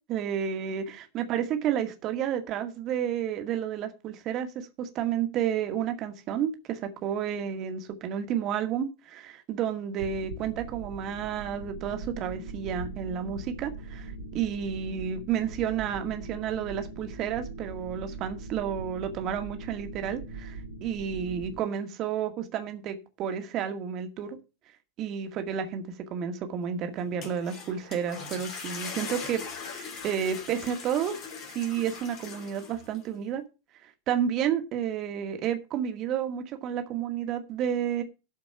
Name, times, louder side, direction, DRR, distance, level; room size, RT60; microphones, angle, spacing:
voice 1, 0.1-24.4 25.0-25.8 26.1-31.2 31.5-33.4 33.8-38.0, right 8 dB, 35° right, 2.0 m, -31 dB
sound 1, 10.0-21.6, right 3 dB, 65° right, 2.7 m, -41 dB
sound 2, 27.0-33.0, left 5 dB, 35° left, 3.0 m, -40 dB
12.0 x 5.2 x 7.0 m
figure-of-eight pair, 90°, 0 cm